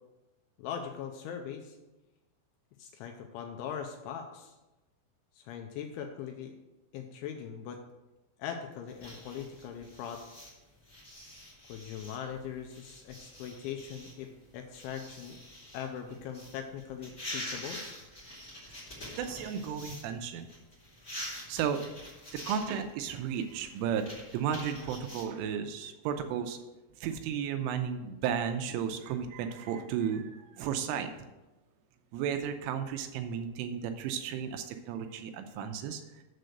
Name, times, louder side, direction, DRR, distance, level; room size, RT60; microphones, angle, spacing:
voice 1, 0.6-1.8 2.8-4.6 5.4-6.5 6.9-7.8 8.4-10.2 11.7-15.4 15.7-17.8, left 8 dB, 85° left, 4 dB, 2.8 m, -40 dB
sound 1, 8.9-20.1 20.4-25.2, left 1 dB, 35° left, 1.1 m, -46 dB
voice 2, 19.2-20.5 21.5-21.8 22.3-24.1 24.3-26.6 27.0-31.1 32.1-36.2, right 8 dB, 85° right, 7 dB, 3.0 m, -34 dB
7.6 x 6.6 x 6.3 m, 1.1 s
omnidirectional pair, 6.0 m